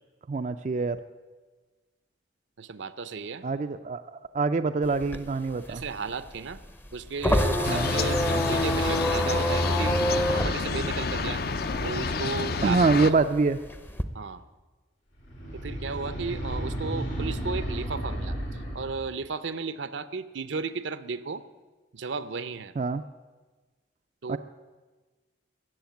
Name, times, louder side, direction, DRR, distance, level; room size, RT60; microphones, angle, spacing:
voice 1, 0.3-1.0 3.4-5.8 7.6-7.9 12.6-13.6 22.8-23.0 24.3-24.4, right 3 dB, 40° right, 9 dB, 0.3 m, -25 dB
voice 2, 2.6-3.4 5.1-5.2 5.7-6.6 6.9-11.4 11.8-12.8 14.1-14.4 15.5-21.4 21.9-22.7 24.2-24.4, right 4 dB, 75° right, 13 dB, 0.7 m, -34 dB
sound 1, 4.8-11.9 12.3-14.0, equal, 10° left, 0.6 m, -27 dB
sound 2, 7.6-13.1, left 4 dB, 55° left, 0.6 m, -29 dB
sound 3, 15.2-19.1, right 1 dB, 90° left, 6.1 m, -33 dB
14.0 x 7.8 x 9.2 m, 1.3 s
head